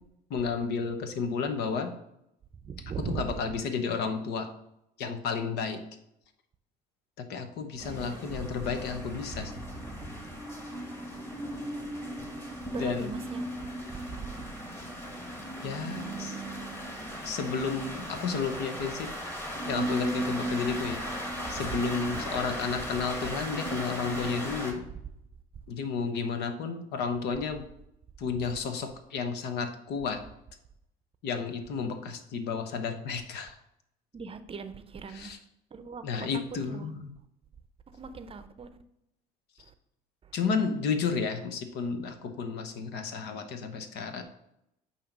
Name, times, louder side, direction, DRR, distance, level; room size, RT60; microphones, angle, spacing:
voice 1, 0.3-1.9 3.0-4.5 5.0-5.8 7.2-9.5 12.8-13.1 15.6-16.4 17.2-19.1 19.6-21.0 21.5-24.8 25.7-27.6 28.2-30.2 31.2-33.6 35.1-35.4 36.0-37.1 40.3-44.2, left 5 dB, 70° left, 0.9 m, -32 dB
voice 2, 2.6-3.6 11.5-11.7 12.2-12.3 12.7-13.4 14.0-14.4 21.6-22.2 34.1-35.3 35.7-36.3 36.7-36.9 37.9-38.7, right 5 dB, 30° right, 0.6 m, -39 dB
sound 1, 7.8-24.7, equal, 15° left, 1.8 m, -36 dB
8.6 x 2.9 x 5.2 m
supercardioid pair, 80°, 18 cm